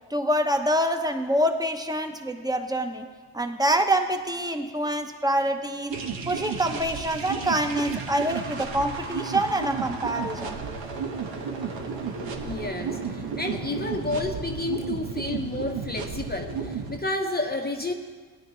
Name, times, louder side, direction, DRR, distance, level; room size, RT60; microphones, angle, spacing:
voice 1, 0.1-3.0 3.3-6.0 6.3-10.6, right 1 dB, 10° right, 6 dB, 1.0 m, -26 dB
sound 1, 5.9-17.0, right 5 dB, 75° right, 1.4 m, -33 dB
voice 2, 12.4-17.9, left 2 dB, 20° left, 3 dB, 0.9 m, -30 dB
17.5 x 9.5 x 3.1 m, 1.5 s
cardioid pair, 60°, 45 cm